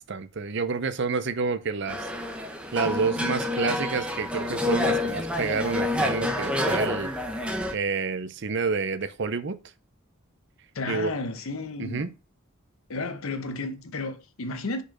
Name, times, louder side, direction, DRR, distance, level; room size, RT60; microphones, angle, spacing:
voice 1, 0.0-2.1 2.7-7.1 7.7-9.6 10.9-11.1 11.8-12.1, right 4 dB, 55° right, 0.6 m, -29 dB
sound 1, 1.9-7.7, left 1 dB, 5° right, 0.7 m, -28 dB
voice 2, 10.7-12.1 12.9-14.8, left 3 dB, 70° left, 0.8 m, -32 dB
5.0 x 4.5 x 5.9 m
head